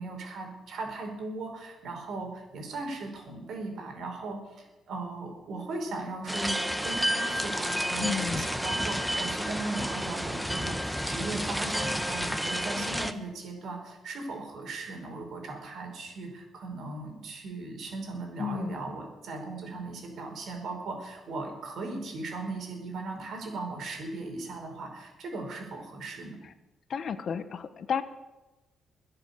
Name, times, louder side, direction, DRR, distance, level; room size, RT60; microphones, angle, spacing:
voice 1, 0.0-26.4, right 3 dB, 65° right, 3 dB, 5.0 m, -38 dB
sound 1, 6.3-13.1, equal, ahead, 1.0 m, -30 dB
voice 2, 8.0-8.5 18.4-18.8 26.4-26.5 26.9-28.0, left 7 dB, 55° left, 12 dB, 1.0 m, -32 dB
21.5 x 7.9 x 6.8 m, 1.1 s
cardioid pair, 90°, 0 cm